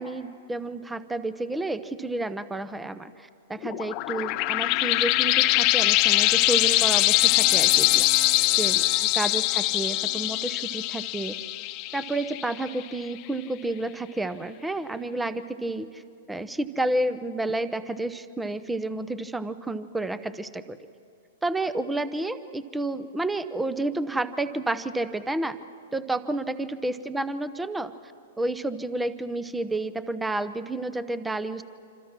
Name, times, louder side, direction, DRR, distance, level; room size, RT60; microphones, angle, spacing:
voice 1, 0.0-8.1 8.6-8.8 9.1-11.4 11.9-16.0 16.3-20.8 21.4-25.6 25.9-27.9 28.4-31.6, right 2 dB, 5° right, 13 dB, 0.9 m, -30 dB
sound 1, 3.6-12.8, left 19 dB, 40° left, 0.7 m, -23 dB
27.0 x 26.5 x 6.1 m, 2.3 s
hypercardioid pair, 115°, 0 cm